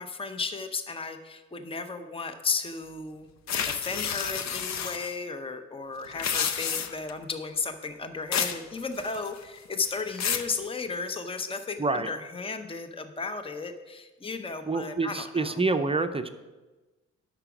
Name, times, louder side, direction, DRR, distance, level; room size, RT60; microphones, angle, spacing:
voice 1, 0.0-3.3 3.6-15.6, left 4 dB, 20° left, 8 dB, 0.7 m, -34 dB
sound 1, 3.5-5.1 6.1-7.1 8.3-8.6 9.0-9.4 9.9-10.5, left 7 dB, 60° left, 0.7 m, -30 dB
voice 2, 11.8-12.1 14.6-16.3, right 3 dB, 20° right, 8 dB, 0.6 m, -27 dB
8.7 x 6.0 x 6.0 m, 1.2 s
cardioid pair, 85°, 30 cm